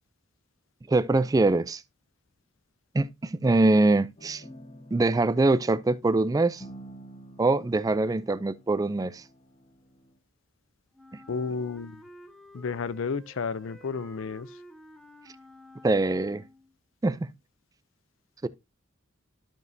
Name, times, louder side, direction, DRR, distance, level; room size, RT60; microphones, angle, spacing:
voice 1, 0.9-1.8 2.9-4.4 4.9-6.6 7.4-9.2 15.8-16.4 17.0-17.3 18.4-18.5, right 2 dB, 20° right, 0.3 m, -23 dB
sound 1, 4.2-10.1, right 1 dB, 30° left, 1.2 m, -50 dB
Wind instrument woodwind instrument, 10.9-16.8, equal, ahead, 0.8 m, -51 dB
voice 2, 11.3-12.0 12.5-14.5, left 5 dB, 70° left, 0.5 m, -32 dB
12.5 x 5.1 x 2.6 m
head